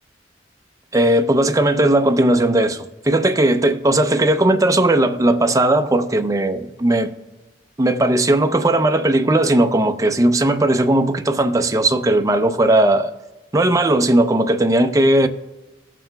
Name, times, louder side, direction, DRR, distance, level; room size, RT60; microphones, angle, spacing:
voice 1, 0.9-7.1 7.8-13.1 13.5-15.3, right 1 dB, 20° right, 0.5 m, -17 dB
17.5 x 7.5 x 2.2 m
head